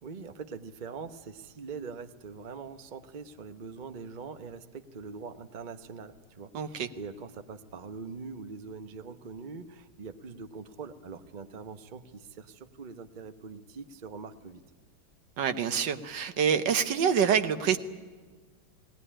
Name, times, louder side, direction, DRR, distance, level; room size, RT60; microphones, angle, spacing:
voice 1, 0.0-14.6, right 5 dB, 80° right, 8 dB, 0.4 m, -43 dB
voice 2, 6.5-6.9 15.4-17.8, right 7 dB, 65° right, 9 dB, 1.5 m, -26 dB
20.0 x 18.5 x 10.0 m, 1.4 s
omnidirectional pair, 2.3 m